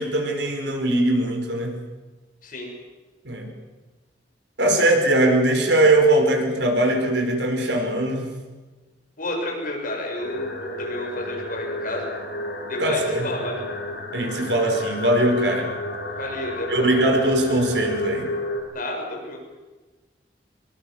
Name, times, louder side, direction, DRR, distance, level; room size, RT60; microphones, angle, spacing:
voice 1, 0.0-1.8 3.2-3.5 4.6-8.3 12.8-13.3 14.1-15.7 16.7-18.3, right 1 dB, 90° right, 3 dB, 5.4 m, -21 dB
voice 2, 9.2-12.0 12.7-13.6 16.2-16.9 18.7-19.4, left 1 dB, 50° left, 0 dB, 7.2 m, -31 dB
sound 1, 10.2-18.6, left 1 dB, 80° left, 6.6 m, -31 dB
25.5 x 23.0 x 7.4 m, 1.2 s
head